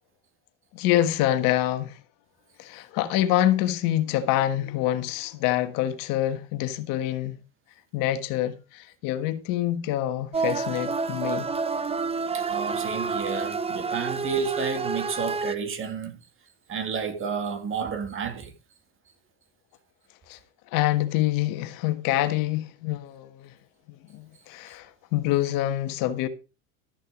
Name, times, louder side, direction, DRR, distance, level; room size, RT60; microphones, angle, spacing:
voice 1, 0.7-2.0 2.6-7.4 7.9-11.5 20.3-20.4 20.7-23.5 23.9-26.3, left 13 dB, 60° left, 1.5 m, -26 dB
sound 1, 10.3-15.6, right 4 dB, 15° right, 0.9 m, -29 dB
voice 2, 12.3-16.2 16.7-18.5, right 6 dB, 35° right, 2.2 m, -31 dB
13.0 x 6.5 x 5.0 m
supercardioid pair, 100°, 38 cm